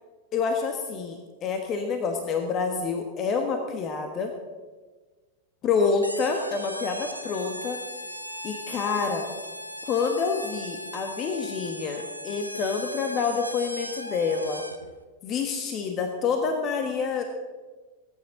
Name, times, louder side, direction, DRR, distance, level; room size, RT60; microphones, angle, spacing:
voice 1, 0.3-4.3 5.6-7.8 8.4-9.3 9.8-14.6 15.2-17.2, left 5 dB, 30° left, 5 dB, 1.3 m, -27 dB
sound 1, 6.0-14.9, equal, 90° left, 0.9 m, -38 dB
21.0 x 9.5 x 3.9 m, 1.4 s
figure-of-eight pair, 90°, 0 cm